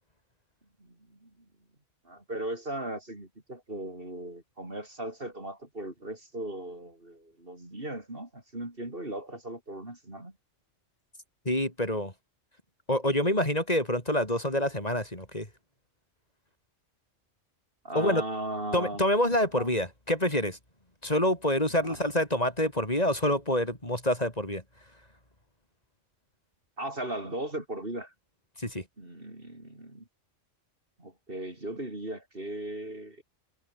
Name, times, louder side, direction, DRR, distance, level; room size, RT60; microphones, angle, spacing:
voice 1, 2.1-10.3 17.8-19.0 19.6-19.7 21.8-22.0 26.8-28.1 29.0-30.0 31.0-33.2, right 1 dB, 45° right, 5.5 m, -37 dB
voice 2, 11.5-12.1 12.9-15.5 18.0-18.2 18.7-20.6 21.0-24.6 28.6-28.8, left 1 dB, 30° left, 5.3 m, -27 dB
omnidirectional pair, 1.3 m